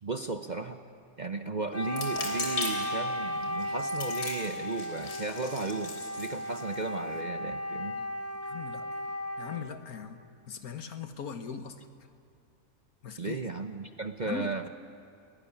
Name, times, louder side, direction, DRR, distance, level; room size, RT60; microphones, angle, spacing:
voice 1, 0.0-0.8 1.2-8.0 13.2-14.7, right 3 dB, 35° right, 7 dB, 0.8 m, -35 dB
Wind instrument woodwind instrument, 1.7-9.7, left 1 dB, 10° left, 1.3 m, -35 dB
sound 1, 1.9-7.2, left 3 dB, 90° left, 3.9 m, -39 dB
voice 2, 8.4-8.9 9.4-10.2 10.5-11.8 13.0-13.4 14.3-14.7, left 6 dB, 70° left, 8 dB, 1.8 m, -39 dB
26.5 x 18.0 x 10.0 m, 2.4 s
omnidirectional pair, 1.6 m